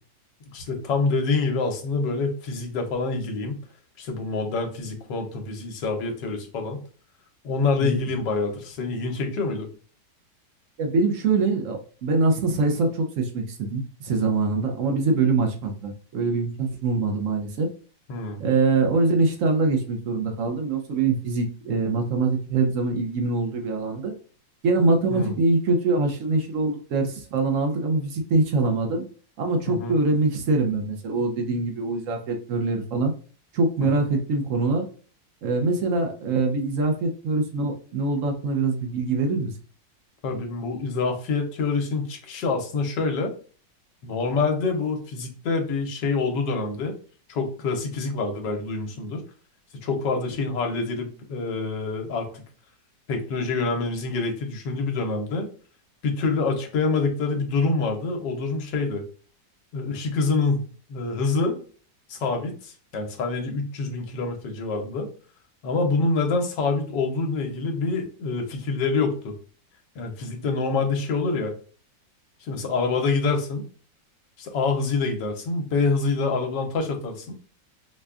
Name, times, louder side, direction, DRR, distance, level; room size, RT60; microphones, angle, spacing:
voice 1, 0.5-3.6 4.0-6.8 7.4-9.7 18.1-18.4 25.1-25.3 29.7-30.0 33.8-34.0 40.2-43.3 44.0-46.9 47.3-49.2 49.8-52.4 53.1-55.5 56.0-59.0 59.7-60.6 60.9-61.6 62.1-65.1 65.6-69.3 70.0-71.5 72.4-73.6 74.4-77.3, left 3 dB, 75° left, 3 dB, 1.4 m, -26 dB
voice 2, 10.8-17.7 18.4-24.1 24.6-29.0 29.4-33.1 33.5-34.9 35.4-39.5, right 3 dB, 65° right, 4 dB, 0.8 m, -24 dB
5.1 x 2.2 x 2.3 m, 0.40 s
omnidirectional pair, 2.0 m